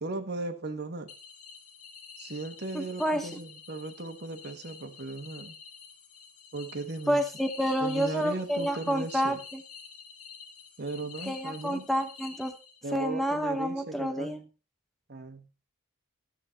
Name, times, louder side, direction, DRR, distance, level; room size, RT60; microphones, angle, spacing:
voice 1, 0.0-1.1 2.2-5.6 6.5-7.2 7.8-9.4 10.8-11.9 12.8-14.5 15.1-15.5, right 2 dB, 50° right, 8 dB, 1.2 m, -37 dB
sound 1, 1.1-13.0, left 6 dB, 90° left, 1.8 m, -48 dB
voice 2, 2.7-3.3 7.1-9.6 11.3-12.5 12.9-14.4, equal, ahead, 6 dB, 0.6 m, -29 dB
11.5 x 7.1 x 4.0 m, 0.33 s
head